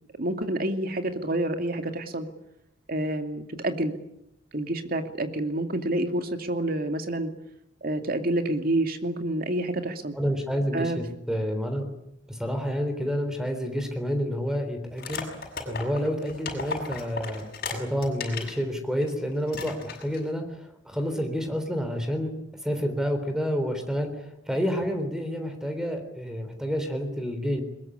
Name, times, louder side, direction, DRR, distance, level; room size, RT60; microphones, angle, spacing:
voice 1, 0.2-2.3 2.9-3.9 4.5-7.3 7.8-10.1 10.7-11.0, right 1 dB, 50° right, 6 dB, 2.5 m, -28 dB
voice 2, 10.1-11.8 12.3-15.3 15.7-17.4 17.7-20.4 20.9-22.3 22.6-24.1 24.5-27.6, equal, 5° right, 6 dB, 3.7 m, -29 dB
sound 1, 15.0-18.6 19.0-19.1 19.5-20.3, left 4 dB, 50° left, 6.6 m, -35 dB
22.0 x 21.0 x 9.9 m, 0.79 s
head